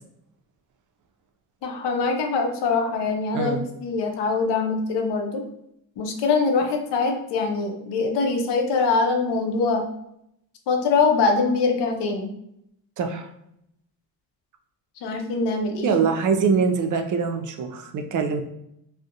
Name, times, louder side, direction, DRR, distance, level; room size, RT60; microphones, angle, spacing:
voice 1, 1.6-5.4 6.0-9.9 10.7-12.3 15.0-15.9, left 4 dB, 75° left, 4 dB, 0.6 m, -23 dB
voice 2, 3.3-3.6 13.0-13.3 15.8-18.4, right 5 dB, 50° right, 6 dB, 0.4 m, -23 dB
2.4 x 2.1 x 2.7 m, 0.77 s
cardioid pair, 85°, 42 cm